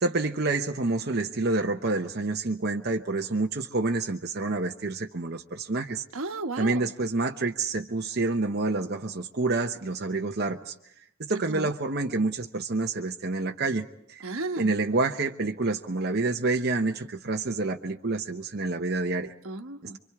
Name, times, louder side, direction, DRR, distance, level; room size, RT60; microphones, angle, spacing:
voice 1, 0.0-6.0 6.6-10.7 11.2-14.2 14.6-19.3, right 3 dB, 50° right, 2 dB, 0.9 m, -28 dB
voice 2, 6.1-6.9 11.3-11.7 14.2-14.7 19.4-20.0, right 2 dB, 75° right, 6 dB, 1.3 m, -34 dB
28.0 x 24.5 x 4.8 m, 0.72 s
head